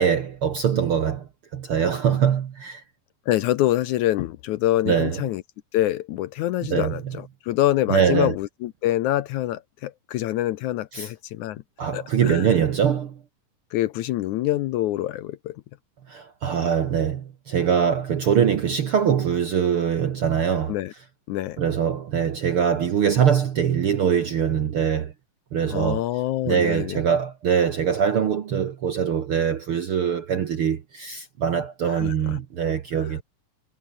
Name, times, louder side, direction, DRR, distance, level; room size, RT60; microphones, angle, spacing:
voice 1, 0.0-2.8 4.8-5.2 6.7-6.9 7.9-8.3 10.9-11.1 11.8-13.2 16.1-20.7 21.6-25.1 25.5-26.0 26.4-33.2, right 8 dB, 60° right, 1.5 m, -23 dB
voice 2, 3.3-5.4 5.7-11.6 11.9-12.6 13.7-15.6 20.7-20.9 21.3-21.6 25.7-27.0 31.8-32.4 33.0-33.1, left 14 dB, 75° left, 1.8 m, -26 dB
omnidirectional pair, 4.1 m